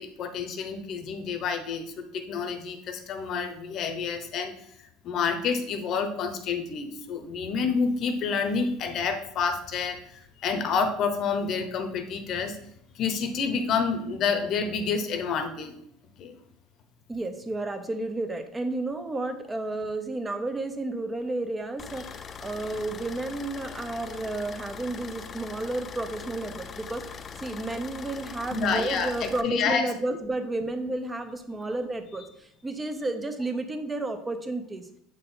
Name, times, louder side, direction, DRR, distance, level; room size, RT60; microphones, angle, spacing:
voice 1, 0.0-4.5 4.8-12.6 12.9-15.7 16.2-16.4 28.5-29.9, left 5 dB, 45° left, 7 dB, 0.9 m, -29 dB
voice 2, 17.1-34.9, right 2 dB, 15° right, 8 dB, 0.7 m, -32 dB
sound 1, 21.8-29.4, left 6 dB, 25° left, 0.4 m, -41 dB
7.7 x 4.4 x 3.8 m, 0.71 s
cardioid pair, 135°, 0 cm